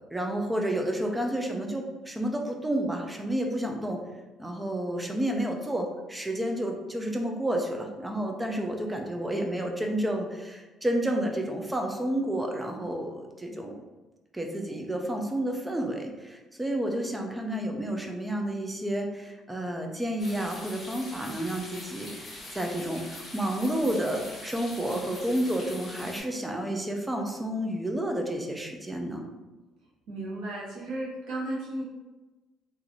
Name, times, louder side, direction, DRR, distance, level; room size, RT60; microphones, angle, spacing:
voice 1, 0.1-4.0 4.4-13.7 14.3-29.3, right 1 dB, 10° right, 2 dB, 0.4 m, -30 dB
sound 1, 20.2-26.2, left 1 dB, 25° left, 1.2 m, -43 dB
voice 2, 30.1-31.8, right 1 dB, 75° right, -5 dB, 1.3 m, -34 dB
3.9 x 2.6 x 2.9 m, 1.2 s
cardioid pair, 165°, 0 cm